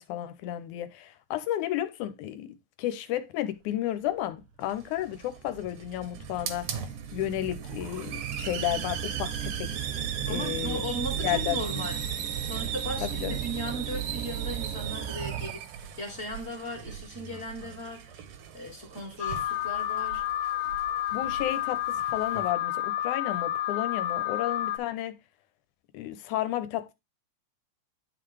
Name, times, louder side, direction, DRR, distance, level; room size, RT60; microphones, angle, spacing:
voice 1, 0.0-6.7 7.1-9.7 10.3-10.8 11.2-11.6 13.0-13.4 21.1-25.1 25.9-26.9, left 13 dB, 90° left, 2.2 m, -32 dB
sound 1, 4.3-4.4 5.1-15.8, right 11 dB, 85° right, 2.3 m, -37 dB
Hiss, 4.6-22.5, right 8 dB, 65° right, 1.5 m, -38 dB
voice 2, 10.3-12.0 12.5-18.3 18.5-20.2, equal, 30° left, 1.4 m, -37 dB
Alarm, 19.2-24.8, left 13 dB, 75° left, 1.8 m, -30 dB
10.5 x 4.0 x 3.2 m
omnidirectional pair, 3.5 m